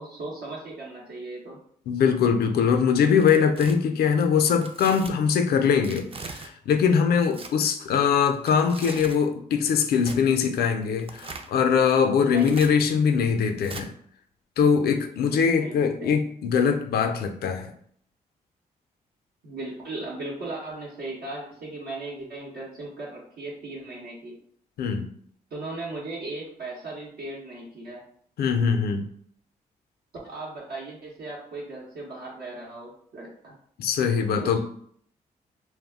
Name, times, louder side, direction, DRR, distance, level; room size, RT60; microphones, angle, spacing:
voice 1, 0.0-1.6 12.2-12.7 15.3-16.2 19.4-24.4 25.5-28.0 30.2-33.5 34.4-34.6, right 2 dB, 80° right, -5 dB, 0.8 m, -37 dB
voice 2, 1.9-13.9 14.6-17.7 24.8-25.1 28.4-29.1 33.8-34.6, left 6 dB, 75° left, 6 dB, 0.4 m, -22 dB
Tearing, 3.1-3.8 4.6-5.1 5.8-6.5 7.2-7.5 8.3-9.2 10.0-10.2 11.0-11.5 12.3-12.7 13.6-13.9, right 4 dB, 35° right, 0.4 m, -40 dB
2.3 x 2.0 x 3.5 m, 0.62 s
supercardioid pair, 55°, 17 cm